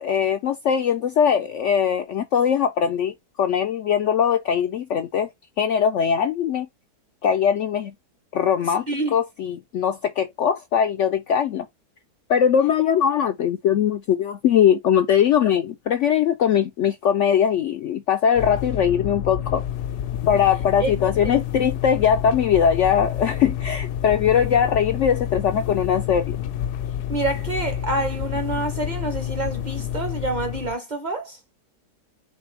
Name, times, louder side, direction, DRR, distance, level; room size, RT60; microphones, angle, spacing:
voice 1, 0.0-5.3 5.6-6.7 7.2-7.9 8.3-11.7 12.3-19.6 20.2-26.4, left 8 dB, 70° left, 0.7 m, -21 dB
sound 1, 18.3-30.7, left 10 dB, 85° left, 1.2 m, -29 dB
voice 2, 27.1-31.4, right 2 dB, 35° right, 0.8 m, -27 dB
4.3 x 3.8 x 3.2 m
omnidirectional pair, 1.7 m